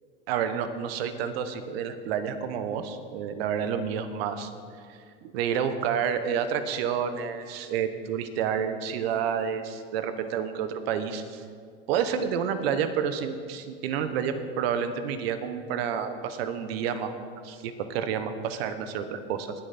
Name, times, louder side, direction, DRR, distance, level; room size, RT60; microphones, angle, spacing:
voice 1, 0.3-4.5 4.9-11.4 11.9-17.2 17.4-19.5, right 7 dB, 75° right, 9 dB, 1.2 m, -29 dB
19.5 x 7.9 x 4.3 m, 2.2 s
hypercardioid pair, 95°, 30 cm